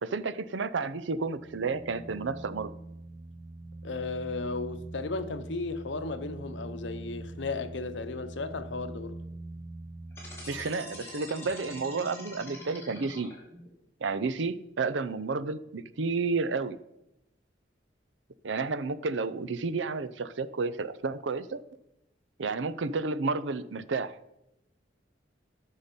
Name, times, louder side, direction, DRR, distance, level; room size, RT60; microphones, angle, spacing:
voice 1, 0.0-2.7 10.5-13.3 14.0-16.8 18.4-21.6 22.4-24.1, right 4 dB, 80° right, 0.6 m, -31 dB
sound 1, 1.0-10.5, right 2 dB, 30° right, 0.8 m, -43 dB
voice 2, 3.8-9.2, left 3 dB, 75° left, 0.8 m, -35 dB
sound 2, 10.1-13.7, left 1 dB, 15° left, 2.9 m, -44 dB
13.5 x 5.6 x 5.3 m
head